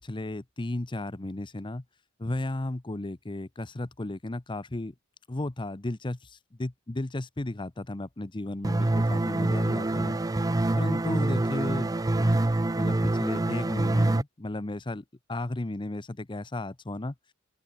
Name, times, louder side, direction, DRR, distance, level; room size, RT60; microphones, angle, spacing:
voice 1, 0.0-1.8 2.2-4.9 5.3-6.3 6.6-10.2 10.8-11.9 12.2-12.4 12.8-15.0 15.3-17.1, left 2 dB, 25° left, 0.8 m, -34 dB
sound 1, 8.6-14.2, right 2 dB, 15° right, 0.5 m, -25 dB
open air
head